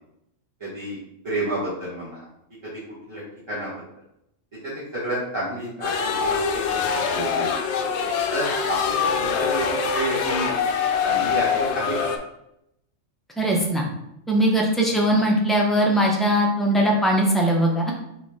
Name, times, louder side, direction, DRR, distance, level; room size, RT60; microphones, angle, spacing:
voice 1, 0.6-1.0 1.2-2.2 2.6-2.7 3.1-3.2 3.5-3.7 4.6-6.8 7.1-7.5 8.3-10.5 11.0-11.9 14.8-15.0, right 1 dB, 25° right, -12 dB, 1.5 m, -30 dB
sound 1, 5.8-12.2, left 6 dB, 70° left, 0.8 m, -24 dB
voice 2, 13.4-13.8 14.3-17.9, right 1 dB, ahead, -1 dB, 0.4 m, -20 dB
4.1 x 3.1 x 3.6 m, 0.81 s
omnidirectional pair, 1.3 m